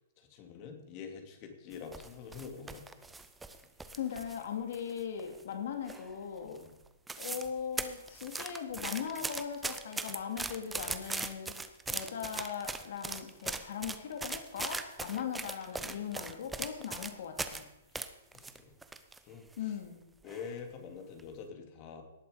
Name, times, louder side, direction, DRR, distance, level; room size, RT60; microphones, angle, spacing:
voice 1, 0.2-2.9 6.5-6.8 17.9-18.1 18.3-18.7 19.2-19.7 20.2-22.0, left 6 dB, 30° left, 4 dB, 2.4 m, -46 dB
sound 1, 1.7-4.4 4.7-5.5 5.9-6.2 6.6-6.7 6.9-7.5 7.8-17.6 18.0-19.2 19.5-19.6 20.3-20.6 21.0-21.2, right 3 dB, 5° right, 0.7 m, -39 dB
voice 2, 3.9-6.6 7.2-11.6 11.9-17.7 19.6-20.1, left 7 dB, 60° left, 4 dB, 2.7 m, -39 dB
18.0 x 7.6 x 5.2 m, 0.94 s
hypercardioid pair, 150°, 0 cm